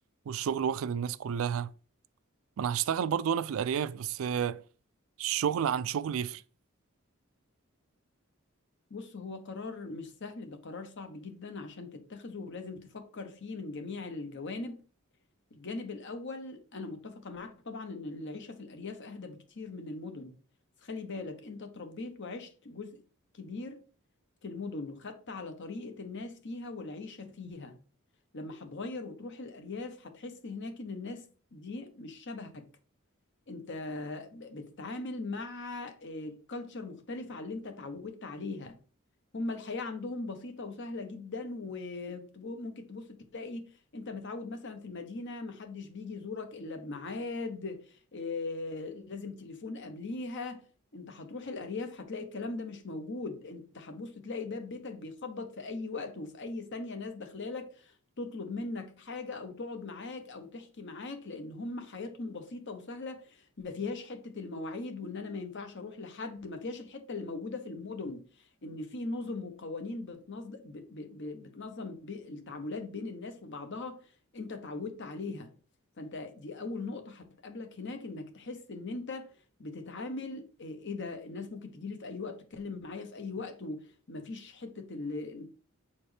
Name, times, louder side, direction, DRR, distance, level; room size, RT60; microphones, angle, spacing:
voice 1, 0.3-1.7 2.6-4.6 5.2-6.4, right 8 dB, 70° right, 0.3 m, -30 dB
voice 2, 8.9-14.8 15.5-20.4 20.8-23.0 23.3-23.8 24.4-27.8 28.3-32.7 33.5-38.8 39.3-50.6 50.9-74.0 74.3-75.5 76.0-85.5, left 3 dB, 60° left, 1.0 m, -40 dB
7.1 x 4.3 x 3.3 m
head